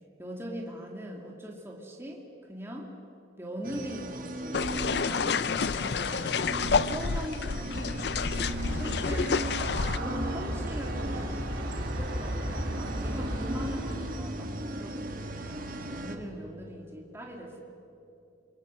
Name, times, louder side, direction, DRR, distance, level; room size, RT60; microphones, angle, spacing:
voice 1, 0.2-2.2 2.5-2.9 3.4-8.0 8.7-17.6, equal, 15° right, -1 dB, 2.4 m, -41 dB
sound 1, 3.6-16.2, right 1 dB, 45° right, 1.6 m, -38 dB
sound 2, 4.5-10.0, left 5 dB, 60° left, 0.5 m, -29 dB
Aircraft, 8.4-14.2, equal, 80° right, 3.1 m, -34 dB
28.5 x 23.5 x 6.4 m, 2.8 s
head